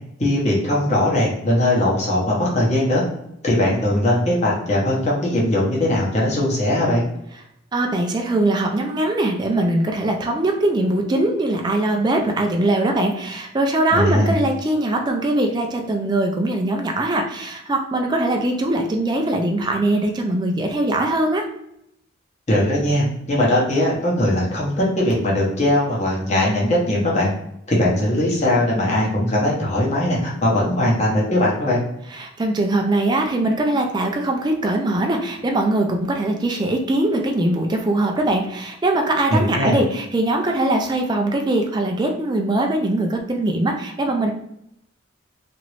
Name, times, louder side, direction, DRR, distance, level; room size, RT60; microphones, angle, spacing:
voice 1, 0.2-3.0 3.4-7.0 13.9-14.3 22.5-27.3 27.7-31.8 39.3-39.8, left 1 dB, 35° left, -4 dB, 0.9 m, -20 dB
voice 2, 7.7-21.5 32.1-44.3, right 1 dB, 20° right, 2 dB, 0.3 m, -21 dB
3.0 x 2.6 x 3.0 m, 0.77 s
head